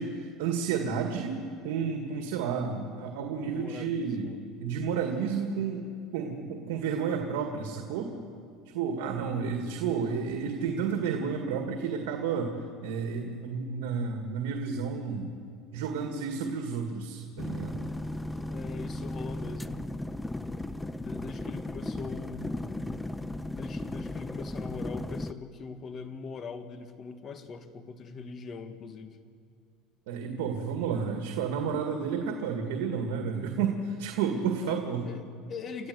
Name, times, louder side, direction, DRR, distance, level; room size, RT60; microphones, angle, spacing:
voice 1, 0.0-4.3 4.6-5.8 6.1-8.1 8.7-12.5 12.8-15.3 15.7-17.9 30.1-35.0, right 6 dB, 80° right, 3 dB, 2.0 m, -31 dB
voice 2, 3.4-4.4 18.5-19.9 20.9-22.9 23.3-29.2 34.6-34.8 35.1-35.9, left 5 dB, 35° left, 9 dB, 1.6 m, -42 dB
sound 1, 17.4-25.3, left 1 dB, 5° left, 0.5 m, -36 dB
29.5 x 13.5 x 8.1 m, 2.4 s
supercardioid pair, 135°, 0 cm